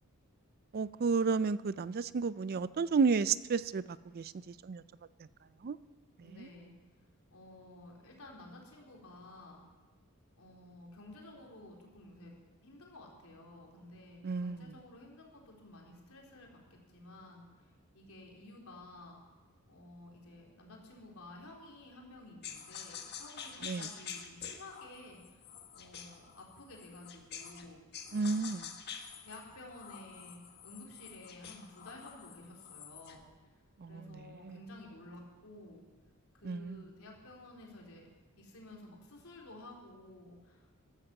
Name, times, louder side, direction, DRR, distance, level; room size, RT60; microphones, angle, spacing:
voice 1, 0.7-4.8 5.6-5.8 6.4-6.5 14.2-14.6 23.6-23.9 28.1-28.7 33.8-34.6 36.4-36.8, right 5 dB, 45° right, 0.4 m, -32 dB
voice 2, 6.2-6.7 7.3-9.6 10.3-12.3 12.6-17.6 17.9-19.2 19.7-25.4 25.7-28.6 29.2-30.4 30.6-33.2 33.9-35.8 36.3-38.1 38.4-40.8, left 2 dB, 80° left, 3.7 m, -53 dB
sound 1, 22.4-27.7 27.9-33.2, left 7 dB, 50° left, 1.3 m, -47 dB
15.0 x 12.0 x 5.9 m
head